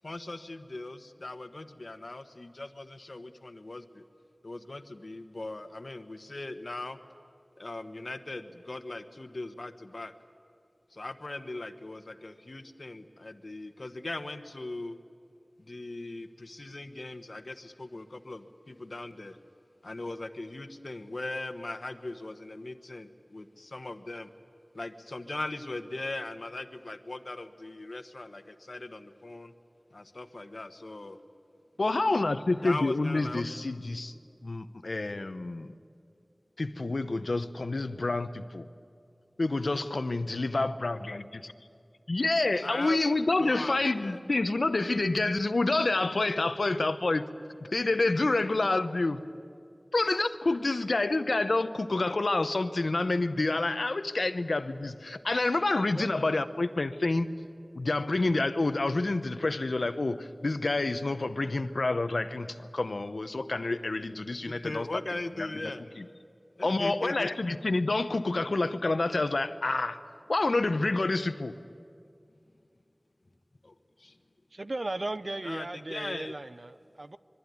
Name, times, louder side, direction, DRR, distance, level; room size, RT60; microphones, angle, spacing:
voice 1, 0.0-4.0 4.4-7.0 7.6-10.1 10.9-15.0 15.6-19.4 19.8-24.3 24.7-29.5 29.9-31.2 32.6-33.4 42.6-43.0 43.4-44.2 64.4-65.8 66.6-67.3 73.6-74.2 75.4-76.3, left 2 dB, 65° left, 8 dB, 1.3 m, -39 dB
voice 2, 31.8-34.1 34.4-35.7 36.6-38.7 39.4-41.2 42.1-47.3 47.6-49.2 49.9-57.3 57.8-64.9 65.4-65.5 66.0-66.1 66.6-70.0 70.3-71.5, left 2 dB, 85° left, 11 dB, 0.9 m, -28 dB
voice 3, 74.5-77.2, right 2 dB, 60° right, 13 dB, 0.7 m, -36 dB
25.5 x 23.0 x 9.6 m, 2.3 s
wide cardioid pair, 50°, 0 cm